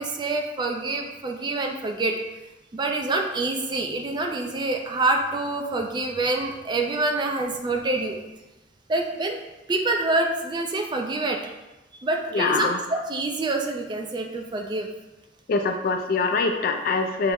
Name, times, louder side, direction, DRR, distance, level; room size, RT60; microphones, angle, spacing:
voice 1, 0.0-2.1 2.7-8.2 8.9-9.4 9.7-11.4 12.0-14.9, right 2 dB, 25° right, 3 dB, 0.3 m, -26 dB
voice 2, 12.3-12.8 15.5-17.3, left 4 dB, 50° left, 6 dB, 0.3 m, -24 dB
5.6 x 2.0 x 3.5 m, 1.0 s
head